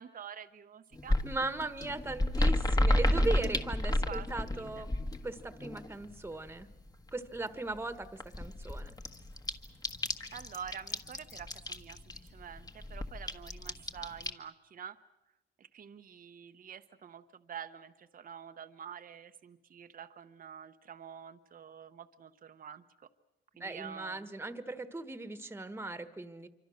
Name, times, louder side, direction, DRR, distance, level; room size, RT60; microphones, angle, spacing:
voice 1, 0.0-1.2 2.9-3.2 3.5-4.8 10.3-15.0 15.6-23.1 23.6-24.3, right 8 dB, 45° right, 9 dB, 1.0 m, -47 dB
sound 1, 0.9-6.1 6.5-7.1 7.3-7.4 7.7-7.8 8.0-14.3, left 1 dB, 20° left, 1.5 m, -31 dB
voice 2, 1.2-4.9 5.2-6.7 7.1-8.1 8.4-8.9 23.6-26.5, right 2 dB, 10° right, 11 dB, 1.5 m, -38 dB
26.0 x 24.5 x 6.5 m, 1.0 s
cardioid pair, 90°, 20 cm